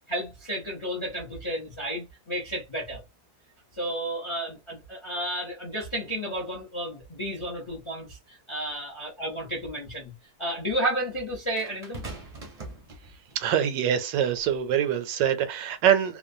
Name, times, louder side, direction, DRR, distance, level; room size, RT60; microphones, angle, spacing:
voice 1, 0.1-3.0 3.7-10.1 10.4-12.1, right 1 dB, 35° left, 0.4 m, -32 dB
sound 1, 8.7-8.8 11.6-13.5 14.4-14.6, right 2 dB, 40° right, 0.6 m, -42 dB
voice 2, 13.3-16.2, right 9 dB, 80° right, 1.2 m, -24 dB
3.0 x 2.2 x 2.6 m
omnidirectional pair, 1.9 m